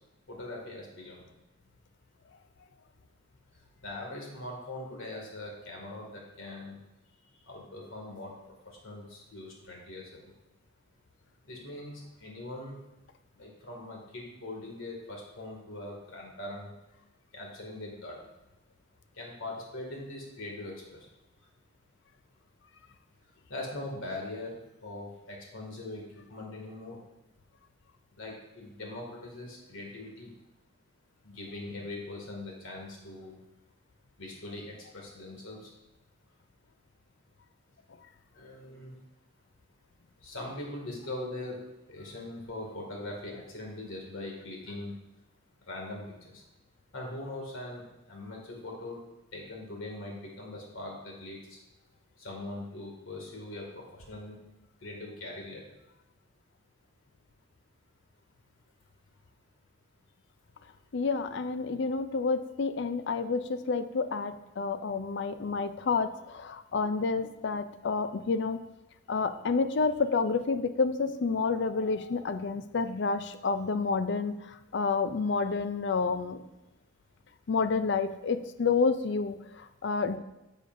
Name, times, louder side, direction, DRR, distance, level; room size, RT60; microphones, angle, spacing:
voice 1, 0.3-1.2 3.8-6.8 7.5-8.3 8.6-10.1 11.5-12.8 13.4-16.7 17.3-18.3 19.2-21.1 23.5-27.0 28.2-30.3 31.2-33.4 34.2-35.7 38.3-39.0 40.2-41.6 41.9-44.9 45.7-46.1 46.9-47.8 48.1-49.0 49.3-51.6 52.2-54.4 54.8-55.6, left 2 dB, 90° left, -1 dB, 2.2 m, -41 dB
voice 2, 60.9-68.6 69.1-76.4 77.5-80.2, left 4 dB, 60° left, 11 dB, 0.4 m, -29 dB
10.0 x 6.9 x 2.6 m, 0.95 s
head